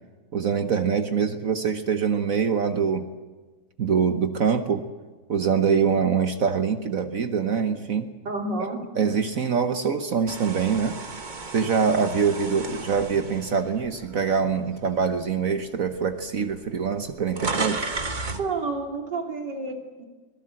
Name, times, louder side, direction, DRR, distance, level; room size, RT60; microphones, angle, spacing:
voice 1, 0.3-3.1 3.8-4.8 5.3-8.1 9.0-11.0 11.5-17.9, right 6 dB, 55° right, 8 dB, 1.4 m, -24 dB
voice 2, 8.3-8.8 18.4-20.1, right 3 dB, 75° right, 3 dB, 3.6 m, -30 dB
sound 1, 10.3-14.5 15.0-15.2 16.1-16.2 16.4-18.5, right 3 dB, 30° right, 1.3 m, -33 dB
24.5 x 18.0 x 7.6 m, 1.4 s
omnidirectional pair, 1.9 m